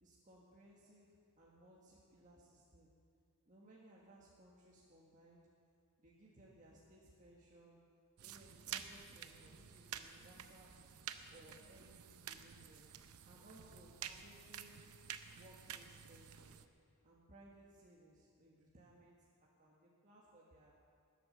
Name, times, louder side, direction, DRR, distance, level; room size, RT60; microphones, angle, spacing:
voice 1, 0.0-2.9 3.4-5.4 6.0-7.8 8.2-10.7 11.3-12.8 13.2-14.8 15.3-16.6 17.0-19.2 19.4-20.7, right 1 dB, 35° right, -5 dB, 1.6 m, -62 dB
sound 1, 8.2-16.7, right 9 dB, 80° right, 0.7 m, -51 dB
19.5 x 8.2 x 6.7 m, 2.3 s
head